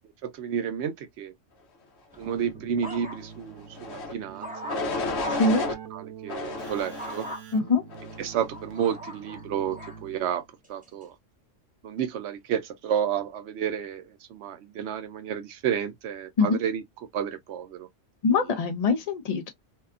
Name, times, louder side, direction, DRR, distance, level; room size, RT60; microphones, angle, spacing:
voice 1, 0.2-1.3 2.2-5.4 5.9-7.3 8.2-10.4 10.7-11.1 11.8-14.0 14.3-16.8 17.1-17.9, right 8 dB, 70° right, 0.8 m, -31 dB
sound 1, 2.1-3.5 3.9-5.6 7.0-7.4 8.1-10.0 10.6-11.0, equal, 10° right, 0.7 m, -41 dB
Keyboard (musical), 2.2-10.5, right 8 dB, 85° right, 1.0 m, -45 dB
sound 2, 3.7-4.1 4.7-5.8 6.3-7.3 7.9-8.3, left 3 dB, 65° left, 0.9 m, -31 dB
voice 2, 7.5-7.8 16.4-16.6 18.2-19.5, left 4 dB, 40° left, 0.6 m, -23 dB
2.7 x 2.3 x 2.3 m
omnidirectional pair, 1.3 m